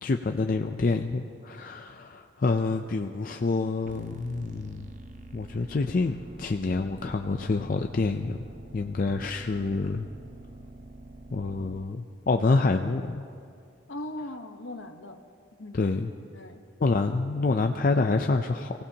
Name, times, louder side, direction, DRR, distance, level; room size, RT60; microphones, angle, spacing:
voice 1, 0.0-4.9 5.3-8.4 8.7-10.1 11.3-13.2 15.7-16.1 16.8-18.7, left 3 dB, 45° left, 5 dB, 0.4 m, -27 dB
sound 1, 3.8-11.9, right 1 dB, 40° right, 0.8 m, -47 dB
voice 2, 13.9-15.2 15.6-15.9 16.3-17.0, left 1 dB, 70° left, 6 dB, 1.1 m, -40 dB
29.0 x 16.0 x 2.9 m, 2.4 s
head